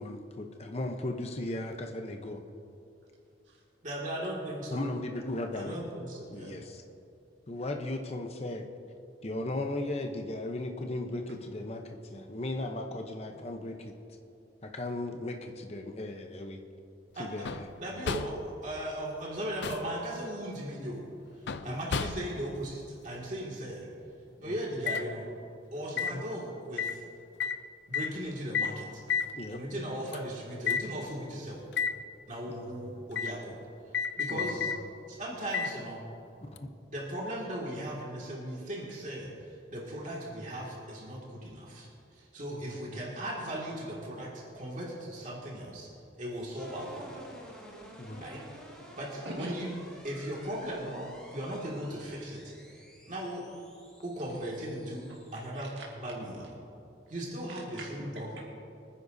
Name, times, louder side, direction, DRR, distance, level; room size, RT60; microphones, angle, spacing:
voice 1, 0.0-2.4 4.7-5.8 6.3-6.8 7.5-8.7 9.2-13.9 14.6-16.6 17.2-18.1 21.6-21.8 24.4-24.5 25.9-26.2 29.4-29.6 32.5-33.0 34.3-34.7 36.4-36.7 42.5-43.0 48.0-48.2, left 2 dB, 35° left, 4 dB, 0.7 m, -37 dB
voice 2, 3.8-4.8 5.5-6.5 17.2-17.3 17.8-21.0 21.6-23.9 24.4-25.3 25.7-27.0 27.9-29.0 29.5-31.7 32.3-33.5 34.2-34.7 35.1-36.0 36.9-39.3 39.7-41.9 42.1-45.9 46.2-47.2 48.2-48.4 49.0-49.7 50.0-52.5 53.1-53.4 54.0-55.1 55.3-55.7 56.0-56.4 57.1-57.8 58.2-58.3, right 1 dB, 40° right, -4 dB, 2.1 m, -37 dB
sound 1, 17.5-17.8 18.1-18.5 19.4-20.0 21.5-22.4 24.9-25.1 26.0-26.2 26.8-27.0 27.4-27.6 27.9-28.1 28.5-28.8 29.1-29.3 30.1-30.2 30.7-30.9 31.7-32.0 33.2-33.4 33.9-34.8 35.5-35.8 36.6-36.7, left 6 dB, 70° left, 0.5 m, -31 dB
sound 2, 46.6-55.5, equal, 5° left, 1.8 m, -52 dB
voice 3, 48.8-49.5 54.2-54.4 55.3-55.9 57.5-58.4, right 1 dB, 80° right, -3 dB, 1.8 m, -45 dB
25.0 x 9.9 x 2.7 m, 2.7 s
head